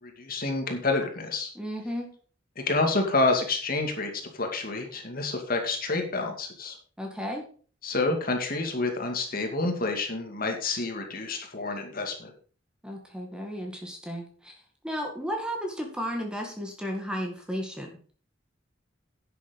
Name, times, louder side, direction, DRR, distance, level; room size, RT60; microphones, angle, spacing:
voice 1, 0.0-1.5 2.6-6.8 7.8-12.3, left 3 dB, 45° left, 3 dB, 2.4 m, -28 dB
voice 2, 1.6-2.1 7.0-7.4 12.8-17.9, equal, 5° right, 1 dB, 2.0 m, -34 dB
10.5 x 7.6 x 5.3 m, 0.42 s
head